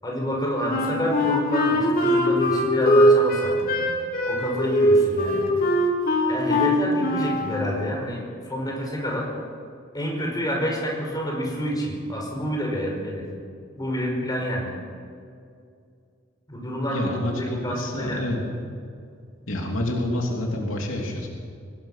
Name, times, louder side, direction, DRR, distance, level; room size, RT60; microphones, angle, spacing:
voice 1, 0.0-3.9 4.3-5.4 6.3-9.3 9.9-13.3 13.8-14.7 16.5-18.2, equal, 20° left, -1 dB, 5.6 m, -28 dB
Wind instrument woodwind instrument, 0.7-7.5, equal, 45° left, 3.1 m, -21 dB
voice 2, 16.9-18.4 19.5-21.3, left 1 dB, 75° left, 0 dB, 3.2 m, -28 dB
23.5 x 19.5 x 5.9 m, 2.3 s
head